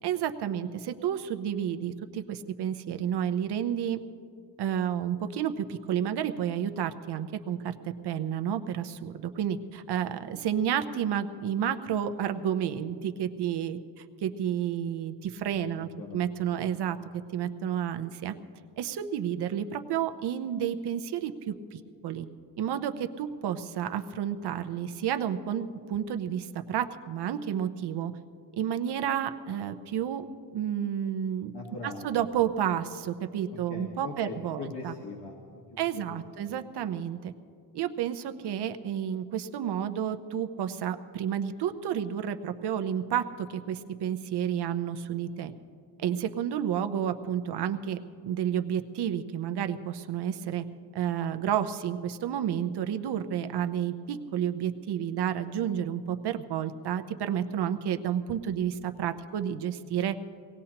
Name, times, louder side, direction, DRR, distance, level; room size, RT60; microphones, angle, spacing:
voice 1, 0.0-0.7 1.0-1.9 2.3-4.0 4.6-5.5 5.9-7.6 8.0-13.8 14.2-15.1 15.4-17.0 17.3-18.3 18.8-21.5 22.0-22.3 22.6-22.9 23.2-26.4 26.7-28.1 28.6-30.2 30.5-31.5 31.8-34.9 35.8-37.3 37.7-43.2 43.5-45.5 46.0-48.0 48.2-50.6 50.9-58.7 59.0-60.1, right 9 dB, 65° right, 9 dB, 0.8 m, -30 dB
voice 2, 15.7-16.2 16.6-16.7 31.5-32.2 33.5-36.5, left 3 dB, 60° left, 0 dB, 1.7 m, -42 dB
24.0 x 18.5 x 2.9 m, 2.4 s
cardioid pair, 145°, 43 cm